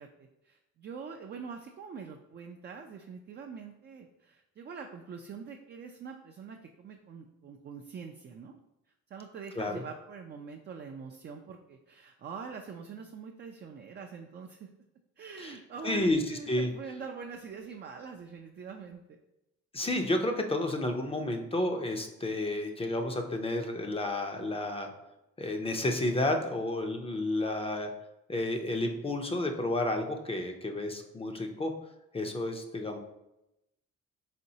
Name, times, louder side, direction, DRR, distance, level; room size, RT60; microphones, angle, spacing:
voice 1, 0.0-8.6 9.1-14.7 15.2-19.2, right 5 dB, 35° right, 3 dB, 0.4 m, -44 dB
voice 2, 15.8-16.7 19.7-24.9 25.4-27.9 28.3-31.7 32.1-33.0, left 1 dB, 20° left, 5 dB, 0.5 m, -31 dB
4.2 x 3.7 x 2.7 m, 0.90 s
cardioid pair, 90°, 30 cm